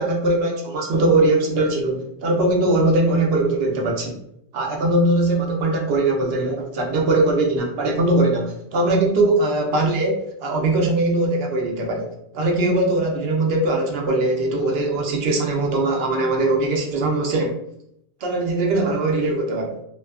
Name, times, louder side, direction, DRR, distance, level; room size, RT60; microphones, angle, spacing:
voice 1, 0.0-4.2 4.5-12.1 12.3-17.6 18.2-19.8, right 2 dB, 70° right, 1 dB, 0.8 m, -21 dB
2.6 x 2.2 x 2.3 m, 0.77 s
omnidirectional pair, 1.1 m